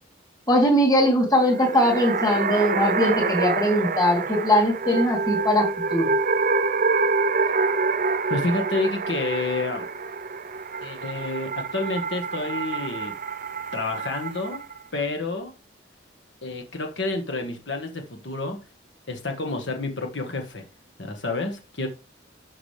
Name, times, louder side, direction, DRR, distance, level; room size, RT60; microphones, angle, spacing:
voice 1, 0.5-6.1, equal, 20° left, 0 dB, 3.2 m, -21 dB
sound 1, 1.4-14.8, right 4 dB, 45° right, 0.7 m, -27 dB
voice 2, 8.3-9.8 10.8-13.1 13.7-14.6 14.9-15.5 16.4-18.6 19.1-20.6 21.0-21.9, left 3 dB, 70° left, 4 dB, 1.6 m, -29 dB
12.0 x 6.0 x 3.4 m, 0.31 s
head